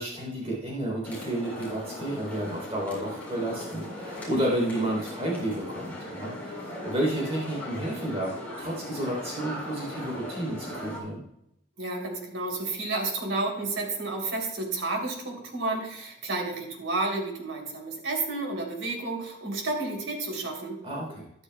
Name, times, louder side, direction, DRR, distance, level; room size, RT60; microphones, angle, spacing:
voice 1, 0.0-11.2 20.8-21.3, right 1 dB, 30° right, -2 dB, 3.5 m, -31 dB
sound 1, 1.0-11.0, left 1 dB, 10° left, 3.9 m, -38 dB
voice 2, 11.8-20.8, right 2 dB, 90° right, 1 dB, 3.3 m, -31 dB
13.5 x 12.0 x 2.3 m, 0.79 s
head